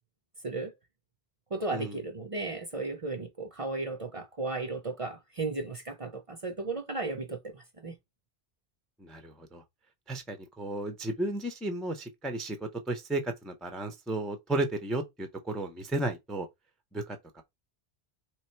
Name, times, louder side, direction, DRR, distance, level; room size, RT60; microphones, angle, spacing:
voice 1, 1.5-7.9, right 3 dB, 35° right, 0.7 m, -35 dB
voice 2, 9.0-9.6 10.1-16.5 16.9-17.4, right 2 dB, ahead, 0.5 m, -34 dB
3.4 x 3.2 x 4.4 m
omnidirectional pair, 1.1 m